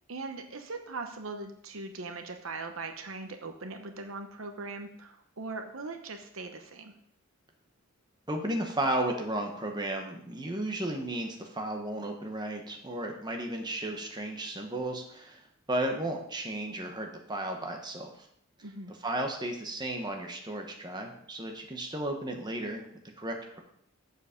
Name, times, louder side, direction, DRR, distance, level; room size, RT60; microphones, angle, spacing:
voice 1, 0.1-6.9 18.6-18.9, right 3 dB, 75° right, 5 dB, 1.0 m, -40 dB
voice 2, 8.3-15.4 15.7-18.3 19.0-22.9 23.2-23.6, right 1 dB, 20° right, 2 dB, 1.1 m, -34 dB
8.1 x 7.1 x 5.2 m, 0.70 s
head